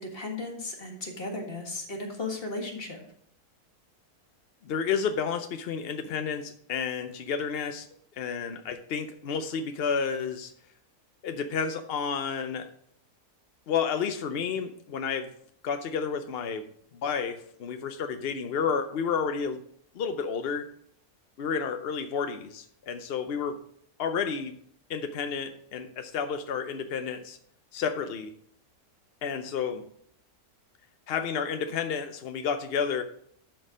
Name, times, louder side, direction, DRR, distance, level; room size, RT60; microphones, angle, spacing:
voice 1, 0.0-3.0, left 2 dB, 40° left, 1 dB, 1.8 m, -35 dB
voice 2, 4.7-7.9 8.2-10.5 11.2-12.7 13.7-15.3 15.6-16.7 17.0-19.6 20.0-20.7 21.4-23.6 24.0-24.5 24.9-27.4 27.7-28.3 29.2-29.8 31.1-33.0, left 6 dB, 60° left, 8 dB, 0.6 m, -31 dB
12.0 x 4.2 x 5.0 m, 0.65 s
omnidirectional pair, 1.6 m